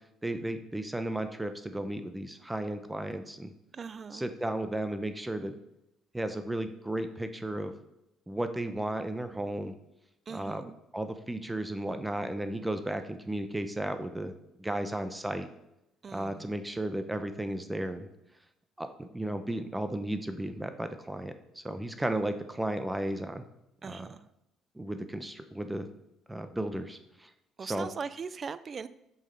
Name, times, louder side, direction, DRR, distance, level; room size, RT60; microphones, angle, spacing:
voice 1, 0.2-3.5 4.1-5.5 6.1-7.7 8.3-9.7 10.3-14.3 14.6-15.5 16.1-18.1 18.8-23.4 23.8-24.1 24.8-25.9 26.3-27.3 27.6-27.9, right 1 dB, 10° right, 9 dB, 0.8 m, -34 dB
voice 2, 3.7-4.2 10.3-10.7 16.0-16.5 23.8-24.2 27.6-28.9, right 5 dB, 40° right, 15 dB, 0.4 m, -40 dB
7.4 x 6.4 x 5.3 m, 0.86 s
cardioid pair, 90°, 0 cm